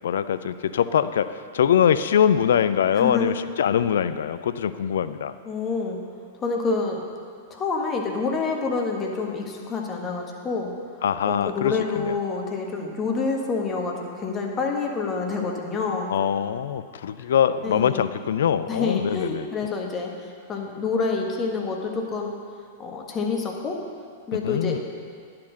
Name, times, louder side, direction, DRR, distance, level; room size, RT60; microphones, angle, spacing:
voice 1, 0.0-5.4 11.0-12.1 16.1-19.5 24.4-24.8, left 8 dB, 65° left, 13 dB, 0.4 m, -23 dB
voice 2, 2.9-3.3 5.4-6.0 6.4-7.0 7.5-10.7 11.2-16.1 17.2-17.3 17.6-18.0 18.7-20.1 20.5-22.3 22.8-23.8 24.3-24.8, left 4 dB, 25° left, 1 dB, 1.5 m, -27 dB
10.5 x 5.8 x 6.4 m, 2.1 s
figure-of-eight pair, 100°, 0 cm